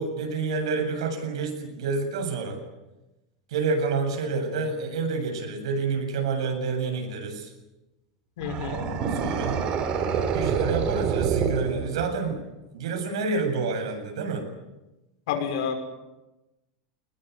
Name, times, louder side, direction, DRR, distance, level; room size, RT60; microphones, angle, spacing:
voice 1, 0.0-2.6 3.5-7.5 8.7-9.6 10.3-12.4 12.7-14.5, right 4 dB, 85° right, 4 dB, 7.9 m, -28 dB
voice 2, 8.4-8.8 15.3-15.8, left 7 dB, 70° left, 6 dB, 5.8 m, -29 dB
sound 1, 8.4-12.3, right 6 dB, 35° right, 3.3 m, -27 dB
23.0 x 20.5 x 9.8 m, 1.0 s
supercardioid pair, 155°, 3 cm